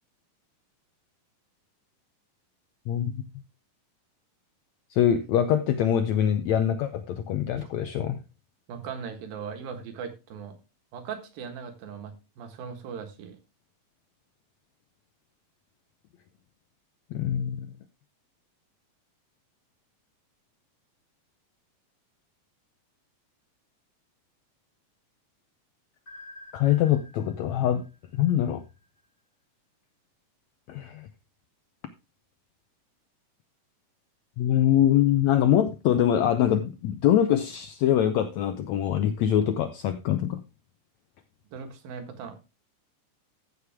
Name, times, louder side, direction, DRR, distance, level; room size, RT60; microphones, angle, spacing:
voice 1, 2.9-3.2 4.9-8.2 17.1-17.7 26.5-27.8 28.1-28.6 30.7-31.1 34.4-40.4, left 10 dB, 85° left, 10 dB, 1.6 m, -24 dB
voice 2, 8.7-10.6 10.9-13.4 41.5-42.4, right 6 dB, 85° right, 7 dB, 3.3 m, -39 dB
sound 1, 26.1-29.0, left 1 dB, 25° left, 3.5 m, -50 dB
14.5 x 6.5 x 3.5 m, 0.27 s
omnidirectional pair, 4.0 m